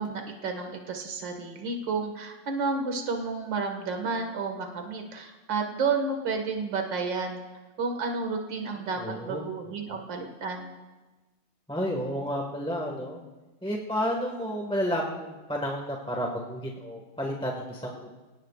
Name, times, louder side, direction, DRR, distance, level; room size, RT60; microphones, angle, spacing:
voice 1, 0.0-7.4 7.8-9.0 9.3-10.7, right 4 dB, 55° right, 3 dB, 2.5 m, -31 dB
voice 2, 8.7-9.5 9.9-10.0 11.7-13.2 13.6-18.1, equal, 5° left, 0 dB, 1.3 m, -31 dB
28.0 x 18.0 x 2.5 m, 1.2 s
omnidirectional pair, 2.4 m